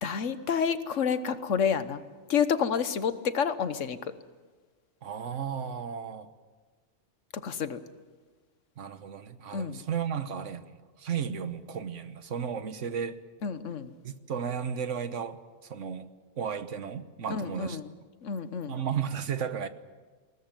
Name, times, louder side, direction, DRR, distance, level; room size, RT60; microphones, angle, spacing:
voice 1, 0.0-2.0 2.3-4.0 7.4-7.8 9.5-9.8 13.4-13.9 17.3-17.9 18.2-18.8, left 7 dB, 80° left, 1.4 m, -29 dB
voice 2, 5.0-6.3 8.8-13.2 14.0-16.1 16.4-17.8 18.7-19.7, right 7 dB, 80° right, 1.4 m, -34 dB
20.5 x 19.0 x 9.1 m
omnidirectional pair, 1.3 m